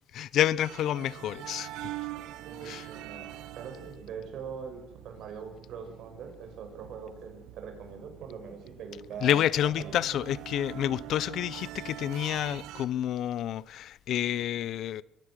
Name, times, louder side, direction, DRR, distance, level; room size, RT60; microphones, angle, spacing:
voice 1, 0.1-1.7 2.6-2.9 9.2-15.0, left 11 dB, 60° left, 0.7 m, -29 dB
sound 1, 0.6-12.9, right 14 dB, 90° right, 1.4 m, -44 dB
voice 2, 2.4-3.3 3.5-10.0, right 6 dB, 65° right, 6.6 m, -42 dB
24.5 x 16.0 x 6.5 m
cardioid pair, 140°, 0 cm